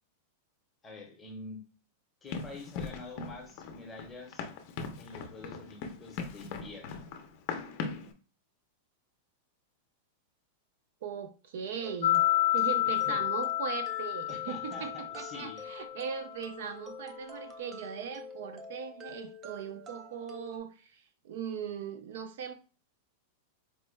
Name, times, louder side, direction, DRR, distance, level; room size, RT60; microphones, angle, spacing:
voice 1, 0.8-1.6 2.2-4.5 5.0-7.0 12.8-13.2 14.3-15.6, left 2 dB, 10° left, 0.8 m, -46 dB
Run, 2.3-8.1, left 5 dB, 35° left, 0.6 m, -40 dB
voice 2, 11.0-12.2 12.5-22.5, right 7 dB, 60° right, 0.6 m, -39 dB
sound 1, 11.8-20.6, left 2 dB, 15° right, 0.4 m, -47 dB
sound 2, 12.0-15.9, left 15 dB, 85° left, 0.5 m, -29 dB
4.4 x 2.2 x 3.1 m
supercardioid pair, 175°, 0 cm